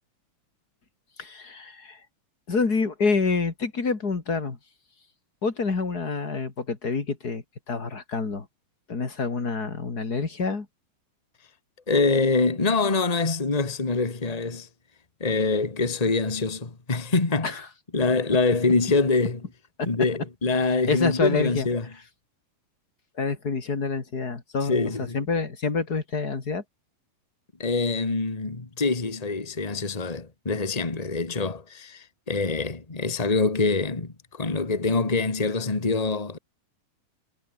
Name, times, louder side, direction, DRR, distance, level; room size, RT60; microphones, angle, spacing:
voice 1, 1.2-2.0 2.5-4.6 5.4-8.5 8.9-10.7 17.4-17.6 19.8-19.9 20.7-21.7 23.2-26.6, left 4 dB, 30° left, 2.8 m, -27 dB
voice 2, 11.9-14.7 15.2-17.5 17.9-19.4 19.9-21.8 24.7-25.2 27.6-36.4, left 3 dB, 55° left, 0.4 m, -25 dB
omnidirectional pair, 4.2 m